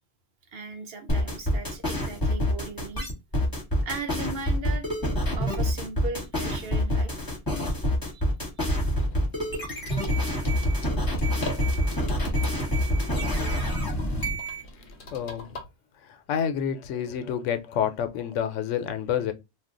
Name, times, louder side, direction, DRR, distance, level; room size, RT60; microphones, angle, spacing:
voice 1, 0.5-3.1 3.8-4.9 5.4-7.3 8.1-8.3 8.6-8.7 10.5-10.7, right 3 dB, 60° right, 0.8 m, -38 dB
sound 1, 1.1-14.6, equal, 20° left, 1.1 m, -26 dB
sound 2, 8.9-15.6, left 2 dB, 50° left, 0.8 m, -42 dB
voice 2, 15.1-15.5 16.0-19.3, left 8 dB, 85° left, 0.9 m, -28 dB
2.4 x 2.2 x 3.7 m
omnidirectional pair, 1.2 m